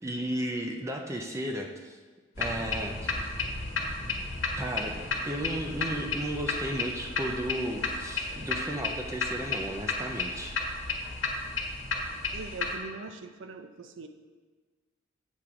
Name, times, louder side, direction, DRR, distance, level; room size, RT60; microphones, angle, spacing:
voice 1, 0.0-2.0 2.4-3.3 4.6-10.6, right 1 dB, 15° right, 2 dB, 0.5 m, -34 dB
sound 1, 2.3-12.7, left 3 dB, 80° left, 1.3 m, -33 dB
voice 2, 12.3-14.1, right 3 dB, 70° right, 8 dB, 0.5 m, -42 dB
8.2 x 3.7 x 5.8 m, 1.4 s
head